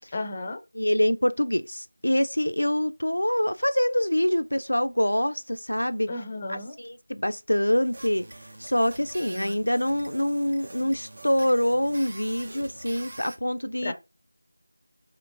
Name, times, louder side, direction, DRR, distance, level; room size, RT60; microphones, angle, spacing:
voice 1, 0.1-0.6 6.1-6.8 9.3-9.6 13.8-13.9, left 2 dB, 20° left, 0.5 m, -34 dB
voice 2, 0.7-6.1 6.5-8.3 8.6-13.9, equal, 80° left, 0.4 m, -25 dB
sound 1, 7.8-13.4, right 2 dB, 40° right, 0.6 m, -44 dB
4.3 x 3.0 x 2.6 m
figure-of-eight pair, 170°, 0 cm